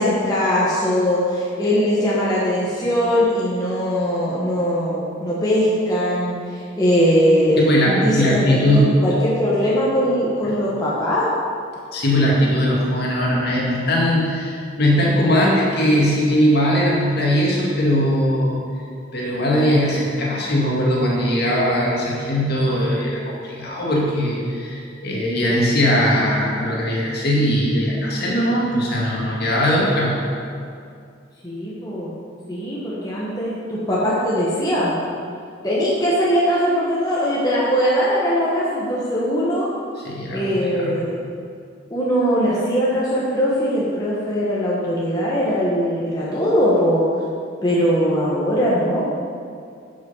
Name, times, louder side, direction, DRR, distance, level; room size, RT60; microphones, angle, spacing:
voice 1, 0.0-11.3 31.4-32.2 32.5-34.9 35.6-39.7 40.3-41.2 41.9-47.1 47.6-49.0, equal, 20° left, -7 dB, 1.4 m, -20 dB
voice 2, 7.6-9.0 10.4-10.6 11.9-18.6 19.1-30.2 40.0-41.0, equal, 50° left, -4 dB, 2.1 m, -20 dB
11.0 x 5.6 x 5.6 m, 2.3 s
head